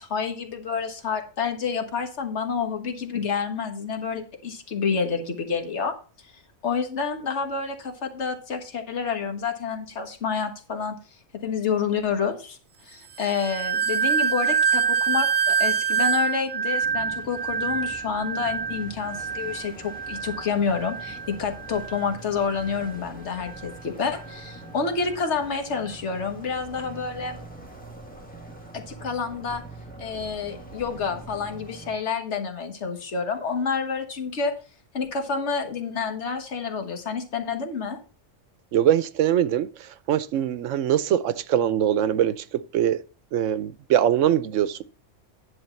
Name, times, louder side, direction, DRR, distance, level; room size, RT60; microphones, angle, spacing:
voice 1, 0.0-5.9 6.6-10.9 11.4-12.6 12.8-27.4 28.7-29.6 30.0-34.5 34.9-38.0, left 5 dB, 65° left, 1.7 m, -28 dB
sound 1, 13.2-22.1 22.5-22.9 23.4-23.7, right 7 dB, 50° right, 0.7 m, -26 dB
sound 2, 16.8-32.0, right 2 dB, 5° left, 1.5 m, -44 dB
voice 2, 38.7-43.0 43.3-44.8, right 10 dB, 80° right, 1.0 m, -23 dB
10.5 x 3.5 x 7.0 m
omnidirectional pair, 1.3 m